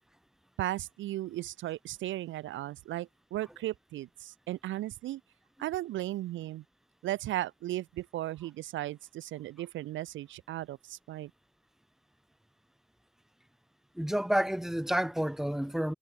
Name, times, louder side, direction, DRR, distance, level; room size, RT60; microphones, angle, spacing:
voice 1, 0.6-5.2 5.6-6.6 7.0-11.3, right 15 dB, 75° right, 0.6 m, -36 dB
voice 2, 13.9-15.9, equal, ahead, 1.3 m, -29 dB
cardioid pair, 90°, 20 cm